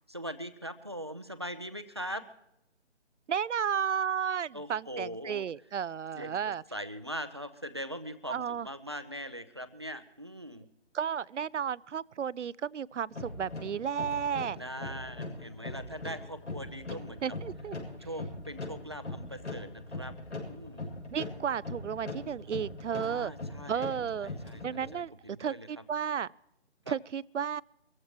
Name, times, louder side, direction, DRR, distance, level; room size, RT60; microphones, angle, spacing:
voice 1, 0.1-2.2 4.5-5.4 6.2-10.7 14.5-17.2 18.0-20.1 20.5-20.9 23.0-25.7 26.8-27.0, equal, 25° right, 0.6 m, -41 dB
voice 2, 3.3-6.6 8.3-8.7 10.9-14.6 17.2-17.8 21.1-23.3 23.7-24.3 24.6-26.3 26.9-27.6, right 7 dB, 85° right, 0.5 m, -33 dB
sound 1, 13.1-24.9, left 2 dB, 90° left, 7.1 m, -41 dB
24.0 x 15.0 x 3.1 m
figure-of-eight pair, 165°, 35 cm